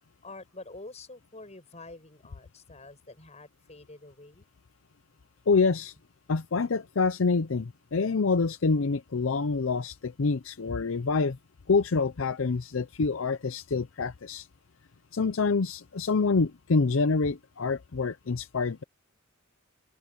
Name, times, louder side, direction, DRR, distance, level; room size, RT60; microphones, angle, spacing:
voice 1, 0.2-4.5, left 2 dB, 30° left, 6.5 m, -47 dB
voice 2, 5.5-5.9 6.3-11.4 11.7-14.5 15.1-18.8, left 4 dB, 70° left, 0.6 m, -26 dB
open air
head